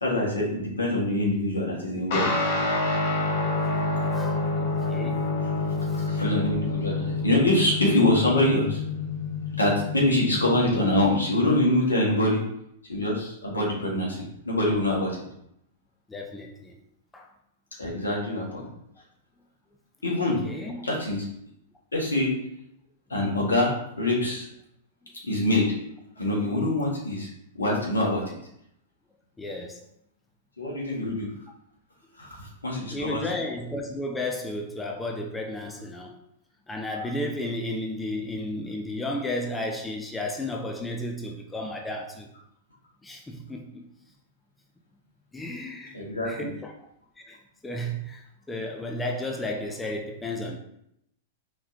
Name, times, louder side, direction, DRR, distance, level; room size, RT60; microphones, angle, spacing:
voice 1, 0.0-2.3 6.0-8.8 9.6-12.4 12.9-15.1 17.8-18.6 20.0-20.4 20.8-21.2 21.9-22.3 23.1-24.5 25.2-25.7 26.2-27.3 27.6-28.2 30.6-31.3 32.2-33.2 45.9-46.5, left 1 dB, 75° left, 1.7 m, -24 dB
Guitar, 2.1-11.8, left 3 dB, 50° left, 1.1 m, -28 dB
voice 2, 4.1-5.3 5.9-6.1 16.1-16.8 17.1-17.3 20.4-20.9 29.4-29.9 32.8-36.2 36.7-42.3 43.0-43.9 45.3-46.0 46.2-46.7 47.3-47.4 47.6-50.6, left 1 dB, 10° left, 0.5 m, -33 dB
4.4 x 3.8 x 2.8 m
figure-of-eight pair, 100°, 0 cm